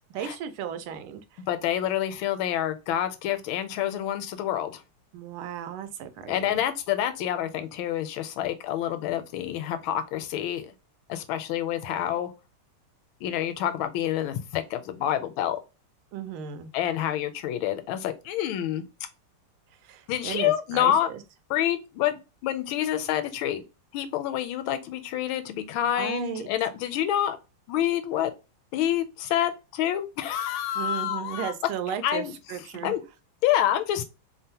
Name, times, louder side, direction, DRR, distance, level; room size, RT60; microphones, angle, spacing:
voice 1, 0.1-1.4 5.1-6.6 16.1-16.7 19.8-21.2 25.9-26.5 30.7-33.0, right 8 dB, 90° right, 1.5 m, -35 dB
voice 2, 1.5-4.8 6.3-10.7 11.1-12.3 13.2-15.6 16.7-18.9 20.1-21.1 21.5-23.6 23.9-27.4 27.7-28.3 28.7-31.5 32.0-32.4 32.8-33.0 33.4-34.0, left 11 dB, 80° left, 1.4 m, -27 dB
3.6 x 2.0 x 2.7 m
omnidirectional pair, 2.2 m